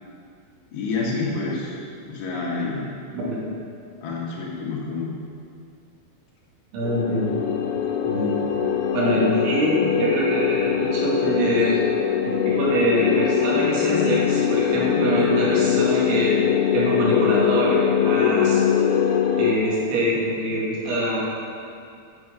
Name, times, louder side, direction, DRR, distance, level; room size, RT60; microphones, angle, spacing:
voice 1, 0.7-1.8 2.1-2.9 4.0-5.2, left 3 dB, 70° left, -4 dB, 3.4 m, -28 dB
voice 2, 3.1-3.4 6.7-7.4 8.0-8.3 8.9-11.8 12.2-16.4 16.7-18.6 19.4-21.2, right 1 dB, 75° right, -6 dB, 4.4 m, -24 dB
sound 1, 6.8-19.6, left 8 dB, 85° left, 3.1 m, -22 dB
9.4 x 6.3 x 6.2 m, 2.4 s
omnidirectional pair, 5.4 m